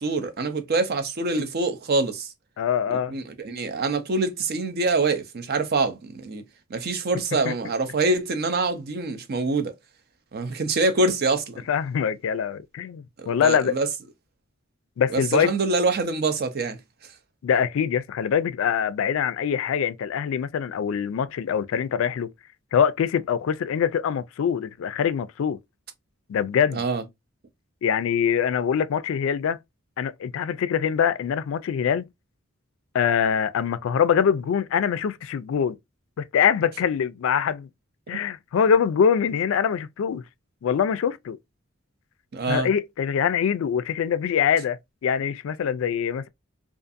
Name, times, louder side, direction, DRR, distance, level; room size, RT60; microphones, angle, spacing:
voice 1, 0.0-2.3 2.9-6.4 6.7-9.7 10.3-11.6 13.2-13.9 15.1-16.8 26.7-27.0 42.3-42.7, right 3 dB, 50° right, 0.5 m, -25 dB
voice 2, 2.6-3.1 7.4-7.5 11.7-13.8 15.0-15.5 17.4-22.3 22.7-25.6 26.3-26.8 27.8-29.6 30.0-32.1 32.9-35.8 36.2-37.7 38.1-40.2 40.6-41.4 42.5-46.3, left 7 dB, 70° left, 0.3 m, -24 dB
2.5 x 2.4 x 2.4 m
head